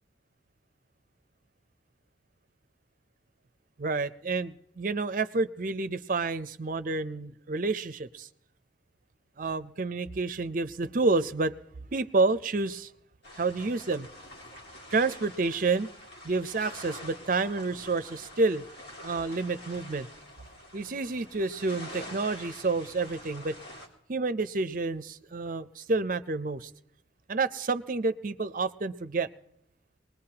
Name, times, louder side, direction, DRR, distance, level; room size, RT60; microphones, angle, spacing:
voice 1, 3.8-8.3 9.4-11.6 11.9-12.9 13.4-14.1 14.9-15.9 16.2-18.6 19.0-20.1 20.7-23.6 24.1-26.7 27.3-29.3, right 3 dB, 45° right, 13 dB, 0.5 m, -29 dB
sound 1, 13.2-23.9, left 1 dB, 55° left, 2.4 m, -46 dB
22.0 x 20.0 x 2.9 m, 0.79 s
head